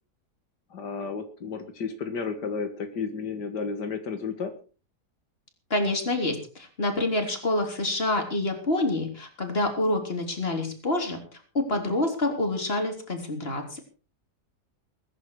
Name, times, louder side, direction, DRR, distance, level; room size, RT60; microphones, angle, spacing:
voice 1, 0.7-4.5, left 5 dB, 85° left, 7 dB, 2.3 m, -32 dB
voice 2, 5.7-11.2 11.5-13.8, left 2 dB, 35° left, 4 dB, 3.9 m, -27 dB
21.5 x 10.5 x 4.8 m, 0.37 s
omnidirectional pair, 1.8 m